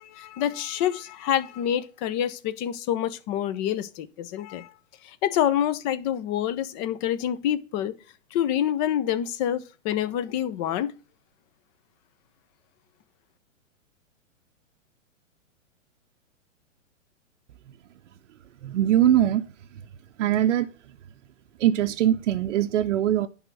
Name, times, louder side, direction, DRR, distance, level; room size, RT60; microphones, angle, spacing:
voice 1, 0.0-4.7 5.2-7.9 8.3-10.9, left 10 dB, 35° left, 0.8 m, -27 dB
voice 2, 18.6-19.5 20.2-20.7 21.6-23.3, right 11 dB, 65° right, 0.7 m, -21 dB
10.5 x 3.6 x 6.0 m
hypercardioid pair, 120°, 39 cm